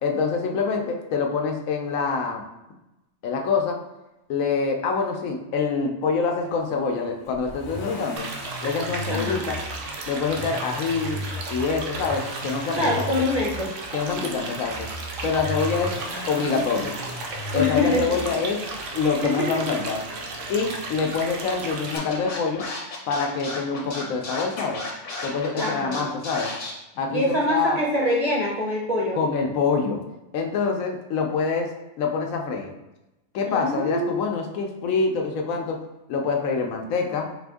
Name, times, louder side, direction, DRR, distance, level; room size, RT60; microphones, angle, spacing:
voice 1, 0.0-2.4 3.2-3.8 4.3-8.3 8.6-9.6 10.1-11.2 11.5-13.1 13.9-14.9 15.2-15.9 16.3-16.9 17.5-18.6 18.9-20.0 20.5-22.6 23.1-24.8 25.2-26.5 27.0-27.8 29.1-30.0 30.3-31.7 32.0-32.7 33.3-35.8 36.1-37.3, left 5 dB, 90° left, 2 dB, 1.1 m, -25 dB
Accelerating revving vroom, 7.3-19.2 20.5-20.6, equal, 30° left, 0.4 m, -37 dB
sound 1, 8.2-22.0, right 3 dB, 70° right, 0.9 m, -34 dB
voice 2, 9.1-9.4 12.8-13.7 17.5-18.2 19.2-19.6 25.6-26.1 27.1-29.2 33.5-34.2, left 1 dB, 40° right, -4 dB, 0.6 m, -25 dB
Scratching (performance technique), 21.9-26.7, left 3 dB, 65° left, 1.2 m, -33 dB
4.4 x 2.5 x 3.5 m, 0.96 s
omnidirectional pair, 1.4 m